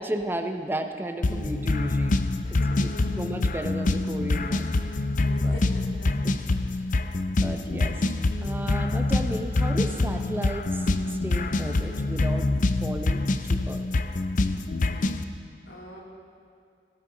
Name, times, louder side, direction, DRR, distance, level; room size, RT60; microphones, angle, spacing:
voice 1, 0.0-2.2 2.5-4.7 5.4-5.6 6.6-6.8 7.3-8.1 8.4-12.5 12.8-13.8, right 1 dB, 10° right, 6 dB, 0.7 m, -34 dB
sound 1, 1.2-15.2, left 2 dB, 45° left, 0.6 m, -25 dB
voice 2, 2.4-3.2 5.3-6.4 15.7-16.0, equal, 90° left, -3 dB, 2.8 m, -44 dB
17.5 x 13.0 x 3.9 m, 2.4 s
head